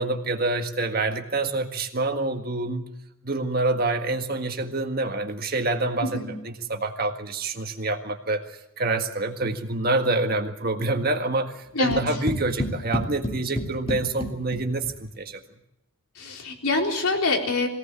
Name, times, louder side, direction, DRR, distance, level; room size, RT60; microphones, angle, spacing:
voice 1, 0.0-2.9 3.2-8.4 8.8-15.4, right 2 dB, 45° right, 5 dB, 1.7 m, -27 dB
voice 2, 11.7-12.2 16.2-17.7, left 3 dB, 90° left, 1 dB, 4.1 m, -25 dB
sound 1, 11.9-15.1, equal, 25° left, 2.2 m, -31 dB
22.5 x 17.5 x 8.4 m, 0.85 s
head